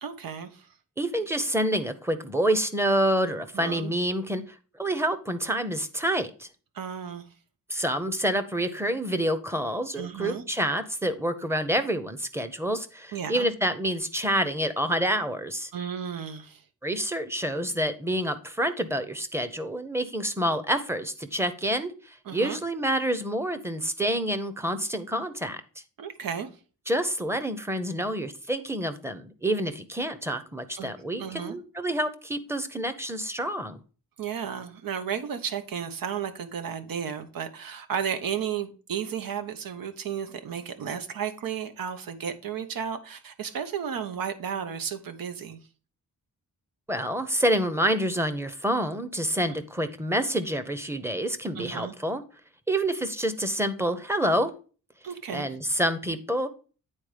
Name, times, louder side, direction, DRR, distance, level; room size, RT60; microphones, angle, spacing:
voice 1, 0.0-0.7 3.5-3.9 6.7-7.3 10.0-10.4 13.1-13.5 15.7-16.6 22.3-22.6 26.0-26.5 30.8-31.6 34.2-45.6 51.5-51.9 55.0-55.5, right 8 dB, 85° right, 1.1 m, -33 dB
voice 2, 1.0-4.4 4.8-6.5 7.7-15.7 16.8-25.6 26.9-33.8 46.9-52.2 52.7-54.5 55.3-56.5, right 1 dB, 10° right, 0.8 m, -28 dB
9.0 x 4.2 x 5.0 m
wide cardioid pair, 140°, 33 cm